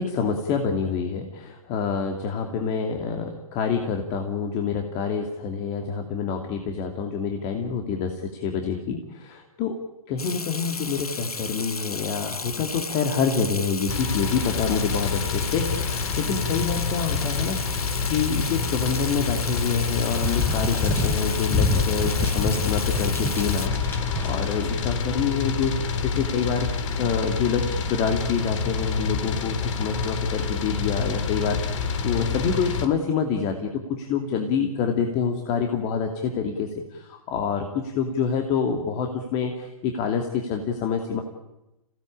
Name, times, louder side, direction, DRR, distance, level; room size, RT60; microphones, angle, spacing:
voice 1, 0.0-9.7 10.1-17.6 18.1-41.2, left 6 dB, 35° left, 4 dB, 2.6 m, -27 dB
Water tap faucet / Sink (filling or washing), 10.2-23.7, left 4 dB, 90° left, 1.1 m, -34 dB
sound 1, 13.9-32.9, left 5 dB, 55° left, 2.8 m, -28 dB
sound 2, 20.1-24.6, left 3 dB, 10° left, 4.1 m, -26 dB
27.5 x 17.5 x 8.8 m, 0.97 s
figure-of-eight pair, 115°, 18 cm